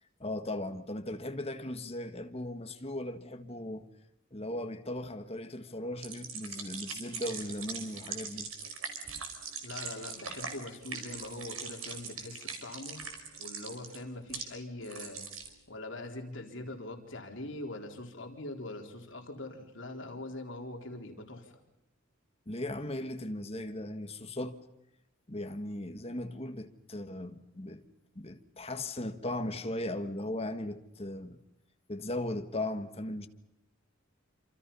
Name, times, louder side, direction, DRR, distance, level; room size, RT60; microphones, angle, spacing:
voice 1, 0.2-3.9 4.3-8.5 22.4-24.6 25.3-27.9 28.1-31.4 31.9-33.3, left 1 dB, 30° left, 1.6 m, -37 dB
sound 1, 6.0-14.4 14.8-15.5, right 5 dB, 85° right, 4.9 m, -41 dB
voice 2, 9.6-13.0 13.4-15.2 15.7-21.5, left 2 dB, 60° left, 4.0 m, -42 dB
28.0 x 27.0 x 5.6 m
head